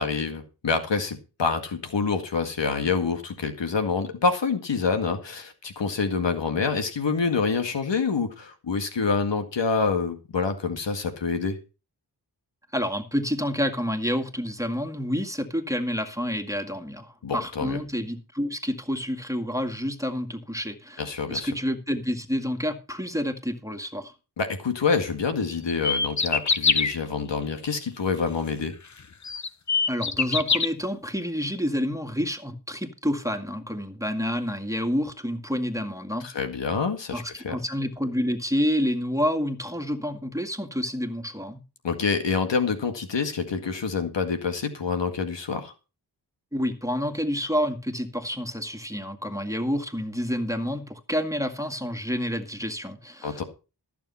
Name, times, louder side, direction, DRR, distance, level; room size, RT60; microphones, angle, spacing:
voice 1, 0.0-11.6 17.2-17.8 21.0-21.5 24.4-28.7 36.2-37.5 41.8-45.7 53.2-53.4, left 5 dB, 80° left, 2.0 m, -27 dB
voice 2, 12.7-24.1 29.9-36.3 37.1-41.6 46.5-53.4, equal, 5° right, 2.1 m, -29 dB
sound 1, 25.7-26.9 28.6-28.7 29.2-30.7, left 5 dB, 40° left, 1.0 m, -23 dB
14.0 x 7.0 x 5.6 m
cardioid pair, 45°, 43 cm